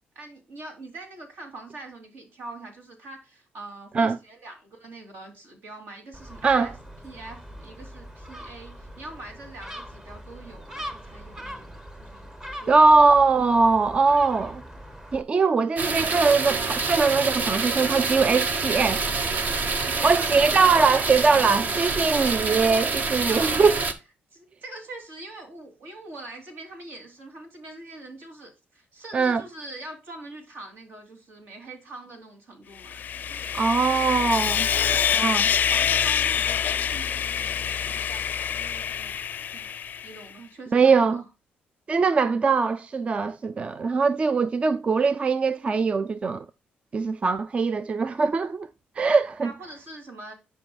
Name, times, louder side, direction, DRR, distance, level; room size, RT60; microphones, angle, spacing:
voice 1, 0.1-6.7 7.0-11.7 12.0-12.3 12.6-13.1 19.8-21.1 23.3-23.7 24.3-33.6 34.7-39.2 39.5-39.7 40.0-41.3 49.4-50.3, right 2 dB, 70° right, 2.9 m, -43 dB
Gull seagull, 6.1-15.2, equal, 15° right, 0.9 m, -41 dB
voice 2, 12.7-14.6 15.1-19.0 20.0-23.7 29.1-29.4 33.5-34.7 35.2-35.4 40.7-41.2 41.9-46.5 46.9-48.7 49.0-49.5, right 4 dB, 30° right, 0.4 m, -21 dB
sound 1, 15.8-23.9, right 4 dB, 45° right, 0.9 m, -26 dB
Sawing, 32.8-40.2, left 8 dB, 55° left, 0.4 m, -26 dB
10.5 x 5.4 x 2.2 m
cardioid pair, 110°, 4 cm